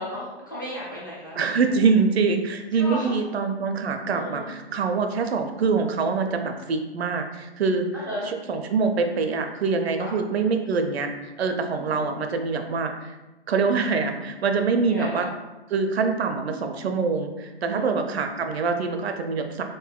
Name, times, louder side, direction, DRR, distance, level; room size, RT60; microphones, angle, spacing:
voice 1, 0.0-1.4 1.6-1.8 2.8-3.2 4.1-4.5 7.9-8.3 10.0-10.1 11.7-12.0 14.9-15.2 17.7-18.0, left 1 dB, 20° left, -6 dB, 0.3 m, -35 dB
voice 2, 1.4-7.9 8.3-13.2 13.5-15.3 15.7-19.6, right 4 dB, 70° right, 6 dB, 0.5 m, -24 dB
3.7 x 2.6 x 2.3 m, 1.1 s
hypercardioid pair, 145°, 33 cm